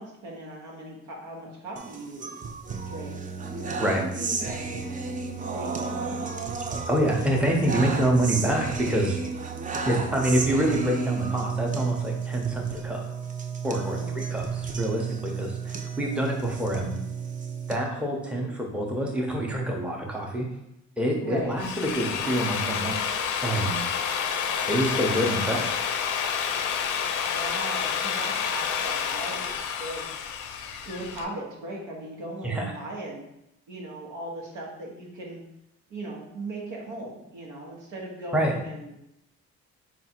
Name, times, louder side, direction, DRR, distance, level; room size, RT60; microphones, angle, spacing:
voice 1, 0.0-2.3 2.9-3.2 3.7-4.4 5.4-6.4 9.8-10.2 13.8-14.2 21.2-21.5 23.9-24.7 27.3-30.1 30.8-33.2 33.7-35.4 35.9-38.9, right 1 dB, 85° right, -2 dB, 1.1 m, -38 dB
sound 1, 1.8-17.8, right 5 dB, 25° right, 0.4 m, -32 dB
voice 2, 6.9-9.2 9.9-13.0 13.6-17.0 17.7-20.5 21.0-22.9 23.4-23.8 24.7-25.8 32.4-32.7 38.3-38.5, right 1 dB, 5° right, -1 dB, 0.8 m, -26 dB
Drill, 21.4-31.2, left 7 dB, 80° left, 0.5 m, -29 dB
3.5 x 2.5 x 4.3 m, 0.83 s
cardioid pair, 90°, 30 cm